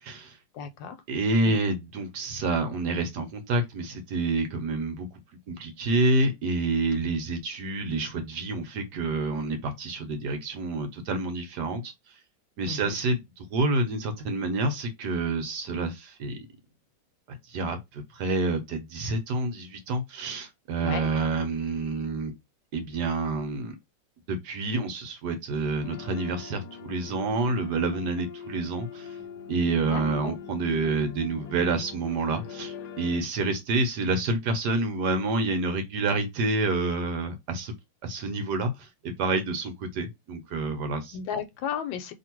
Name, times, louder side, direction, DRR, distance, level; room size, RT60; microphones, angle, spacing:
voice 1, 0.0-0.4 1.1-5.1 5.5-11.9 12.6-16.4 17.3-22.3 22.7-23.8 24.3-29.1 29.5-37.7 38.0-41.2, right 2 dB, 65° right, 1.4 m, -28 dB
voice 2, 0.5-1.0 1.5-1.6 12.7-12.9 20.8-21.1 29.9-30.4 41.1-42.1, left 7 dB, 90° left, 1.4 m, -34 dB
sound 1, 25.8-33.2, left 7 dB, 70° left, 1.1 m, -43 dB
3.0 x 2.9 x 4.4 m
omnidirectional pair, 2.0 m